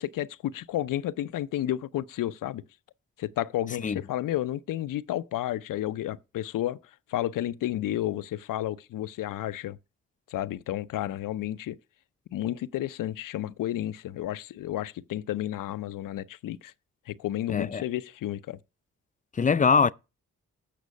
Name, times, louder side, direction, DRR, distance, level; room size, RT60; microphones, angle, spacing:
voice 1, 0.0-2.6 3.2-6.8 7.1-9.8 10.3-11.8 12.3-16.7 17.1-18.6, left 13 dB, 80° left, 0.5 m, -31 dB
voice 2, 17.5-17.8 19.3-19.9, left 5 dB, 25° left, 0.4 m, -22 dB
8.5 x 6.1 x 5.2 m
supercardioid pair, 50°, 32 cm